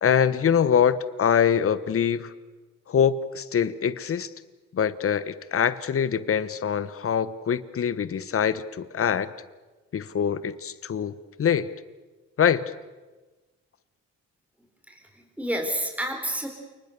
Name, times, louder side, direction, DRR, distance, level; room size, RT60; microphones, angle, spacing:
voice 1, 0.0-2.3 2.9-4.3 4.7-8.6 8.9-9.3 9.9-11.7 12.4-12.7, left 8 dB, 45° left, 15 dB, 1.2 m, -24 dB
voice 2, 14.9-16.5, right 1 dB, 5° right, 3 dB, 4.4 m, -30 dB
29.5 x 20.0 x 6.8 m, 1.2 s
cardioid pair, 90°, 30 cm